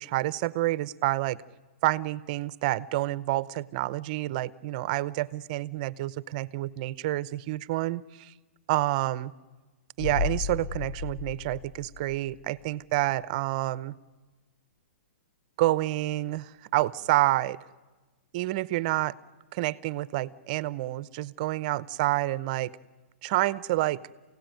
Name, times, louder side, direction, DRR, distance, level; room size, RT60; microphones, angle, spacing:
voice 1, 0.0-1.4 1.8-8.3 8.7-9.3 10.0-14.0 15.6-17.6 18.3-19.1 19.5-22.7 23.2-24.0, right 16 dB, 40° right, 19 dB, 0.7 m, -28 dB
sound 1, 10.0-12.7 13.0-13.1, left 5 dB, 60° left, 1.0 m, -34 dB
28.5 x 16.5 x 9.2 m, 1.2 s
hypercardioid pair, 150°, 7 cm